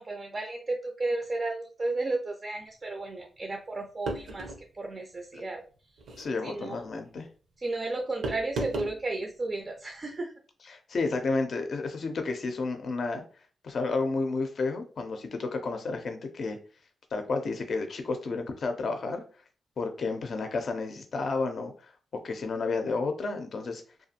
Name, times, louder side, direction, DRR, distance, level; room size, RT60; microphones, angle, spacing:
voice 1, 0.0-5.6 6.4-6.8 7.6-10.3, right 2 dB, 35° right, 2 dB, 0.4 m, -33 dB
sound 1, 4.1-4.6 6.0-6.3 8.2-9.0, right 2 dB, 80° right, 0.6 m, -34 dB
voice 2, 6.2-7.3 10.7-13.2 13.6-16.6 17.1-19.2 19.8-21.9 22.2-23.8, left 3 dB, 60° left, 6 dB, 0.4 m, -31 dB
2.4 x 2.3 x 2.7 m, 0.39 s
cardioid pair, 80°, 0 cm